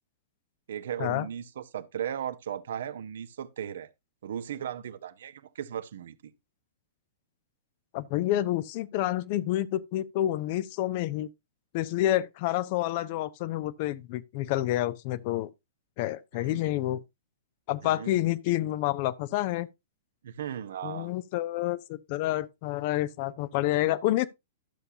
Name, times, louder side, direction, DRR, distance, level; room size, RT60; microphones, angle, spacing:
voice 1, 0.7-3.9 4.2-6.3 16.3-16.6 17.8-18.1 20.2-21.1, right 9 dB, 60° right, 0.7 m, -36 dB
voice 2, 7.9-11.3 11.7-15.5 16.0-17.0 17.7-19.7 20.8-24.3, left 14 dB, 45° left, 0.6 m, -28 dB
12.0 x 6.7 x 2.7 m
figure-of-eight pair, 105°, 0 cm